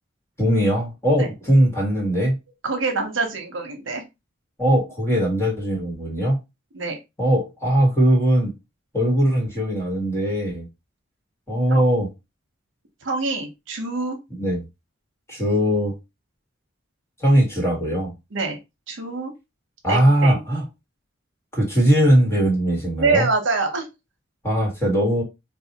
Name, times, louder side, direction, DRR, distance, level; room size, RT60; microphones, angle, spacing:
voice 1, 0.4-2.4 4.6-6.4 7.2-8.5 8.9-10.7 11.5-12.1 14.4-14.6 15.3-15.9 17.2-18.1 19.8-20.6 21.5-23.3 24.4-25.2, equal, 15° left, 1.3 m, -20 dB
voice 2, 2.6-4.0 6.7-7.0 11.7-11.8 13.0-14.2 18.3-18.6 18.9-19.3 19.9-20.4 23.0-23.9, right 3 dB, 70° right, 0.9 m, -25 dB
4.1 x 2.3 x 2.8 m
head